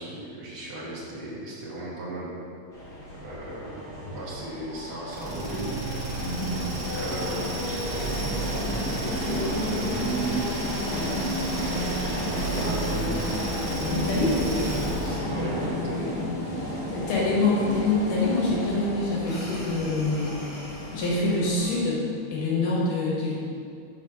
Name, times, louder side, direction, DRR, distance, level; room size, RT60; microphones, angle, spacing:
voice 1, 0.0-2.3 3.2-3.8 4.1-5.7 6.9-10.5 11.5-13.3 14.1-15.0 15.3-16.2, right 2 dB, 65° right, -5 dB, 0.9 m, -35 dB
sound 1, 2.7-21.8, equal, 35° left, 2.2 m, -33 dB
sound 2, 5.1-15.3, right 1 dB, 35° right, 1.2 m, -32 dB
voice 2, 6.2-6.6 13.9-14.3 14.8-15.5 16.9-20.4 20.9-22.1 22.3-23.3, left 2 dB, 75° left, -5 dB, 2.8 m, -26 dB
5.9 x 5.0 x 5.9 m, 2.5 s
omnidirectional pair, 3.7 m